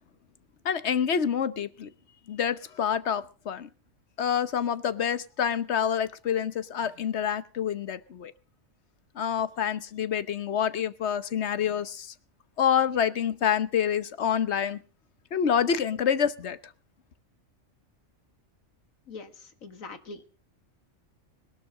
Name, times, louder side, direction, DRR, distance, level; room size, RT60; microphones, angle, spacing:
voice 1, 0.6-1.9 2.3-3.7 4.2-8.3 9.1-12.1 12.6-14.8 15.3-16.6, left 8 dB, 60° left, 1.2 m, -27 dB
voice 2, 19.1-20.2, left 3 dB, 90° left, 2.1 m, -43 dB
21.0 x 12.0 x 3.8 m
omnidirectional pair, 1.4 m